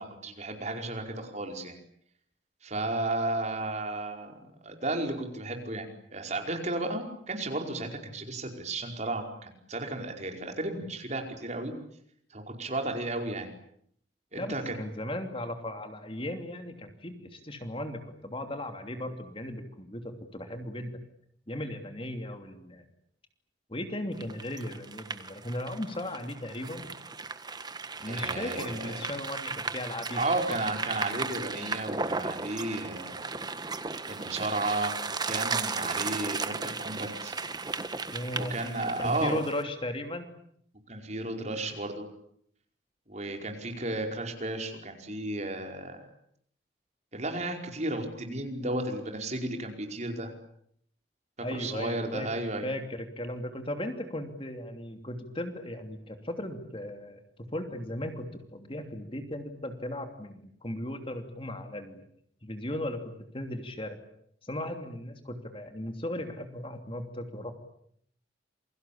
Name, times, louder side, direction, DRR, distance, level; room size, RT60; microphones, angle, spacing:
voice 1, 0.0-1.8 2.6-11.7 12.3-13.5 14.3-14.7 28.1-29.0 30.2-33.4 34.1-37.4 38.3-39.4 40.9-42.1 43.1-46.1 47.1-50.3 51.5-52.7, right 2 dB, 40° right, 4 dB, 5.1 m, -33 dB
voice 2, 14.4-21.0 21.5-22.8 23.7-26.9 28.0-30.2 30.5-30.6 38.1-38.5 39.0-40.3 51.4-52.3 52.6-57.2 57.5-62.0 62.4-64.0 64.4-67.5, left 1 dB, 30° left, 6 dB, 2.9 m, -36 dB
sound 1, 24.2-39.6, right 4 dB, 20° right, 1.4 m, -35 dB
28.5 x 23.5 x 8.7 m, 0.69 s
head